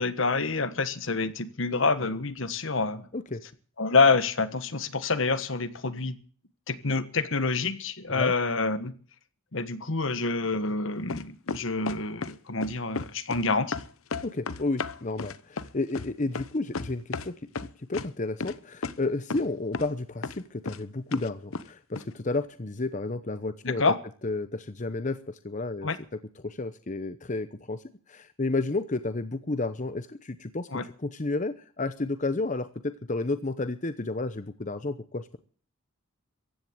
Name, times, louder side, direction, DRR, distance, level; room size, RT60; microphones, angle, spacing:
voice 1, 0.0-3.1 3.8-6.2 6.7-8.9 9.5-13.8 23.6-24.0 25.8-26.0 30.7-30.8, left 4 dB, 65° left, 1.4 m, -27 dB
sound 1, 11.1-12.3 12.6-13.4 13.7-17.3 17.6-18.1 18.4-18.6 18.8-18.9 19.3-19.5 19.7-19.9 20.2-20.8 21.1-21.7 22.0-22.1, left 4 dB, 90° left, 0.9 m, -33 dB
voice 2, 14.2-17.3 17.9-23.8 24.2-27.8 28.1-30.7 31.0-35.4, left 2 dB, 35° left, 0.8 m, -31 dB
15.5 x 10.5 x 7.9 m
head